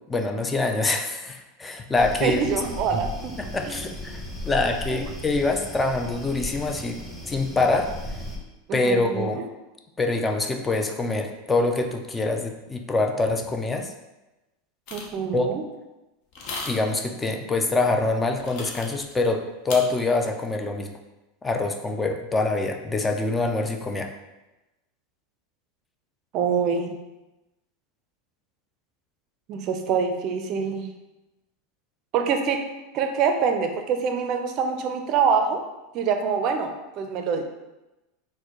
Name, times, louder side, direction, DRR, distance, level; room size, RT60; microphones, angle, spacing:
voice 1, 0.1-2.4 3.4-7.0 7.3-7.9 8.7-9.5 10.0-13.9 15.3-15.6 16.7-21.0 21.4-24.1, left 3 dB, 15° left, 4 dB, 0.4 m, -25 dB
sound 1, 1.9-8.4, equal, 5° right, 1.0 m, -36 dB
voice 2, 2.2-3.3 3.7-3.8 4.9-5.1 8.7-9.4 14.9-15.6 26.3-26.9 29.5-30.9 32.1-32.6 32.9-35.6 35.9-37.4, right 6 dB, 50° right, 6 dB, 0.4 m, -25 dB
sound 2, 14.9-15.2 16.3-17.0 18.4-19.1 19.7-19.8, left 3 dB, 55° left, 0.7 m, -35 dB
4.1 x 2.1 x 2.9 m, 1.0 s
hypercardioid pair, 95°, 0 cm